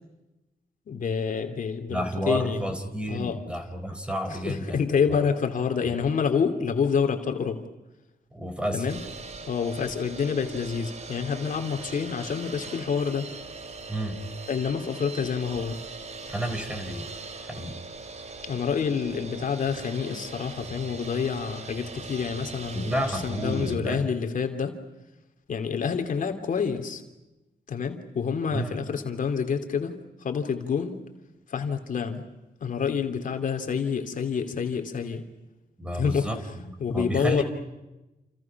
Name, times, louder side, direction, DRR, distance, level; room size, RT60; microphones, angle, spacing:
voice 1, 0.9-2.6 3.1-3.4 4.4-7.6 8.7-9.0 9.5-13.3 14.5-15.8 18.5-24.8 25.5-27.0 27.7-31.0 31.5-32.2 32.6-35.3 36.0-36.3 36.8-37.4, left 6 dB, 60° left, 2.9 m, -28 dB
voice 2, 1.9-5.0 5.8-5.9 8.3-8.9 13.9-14.2 16.3-17.1 17.4-17.8 22.7-24.1 28.5-28.8 35.8-37.4, equal, 5° right, 3.9 m, -31 dB
sound 1, 8.9-23.8, right 3 dB, 45° right, 2.5 m, -41 dB
29.5 x 29.0 x 6.0 m
wide cardioid pair, 160°, 16 cm